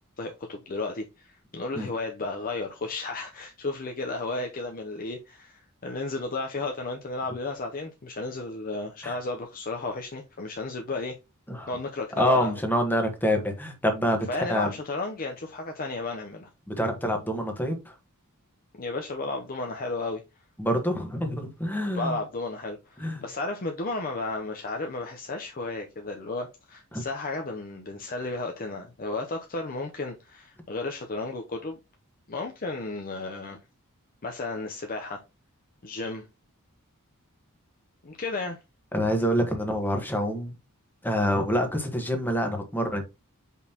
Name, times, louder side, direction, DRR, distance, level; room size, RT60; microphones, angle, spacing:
voice 1, 0.2-11.2 11.7-12.6 14.3-16.5 18.7-20.2 21.7-31.8 32.3-33.6 34.2-35.2 35.8-36.3 38.0-38.6, left 3 dB, 40° left, 0.7 m, -33 dB
voice 2, 12.2-14.7 16.7-17.9 20.6-22.2 23.0-23.2 26.9-27.0 38.9-40.5 41.0-43.0, equal, 10° left, 1.3 m, -26 dB
6.2 x 5.4 x 2.9 m
head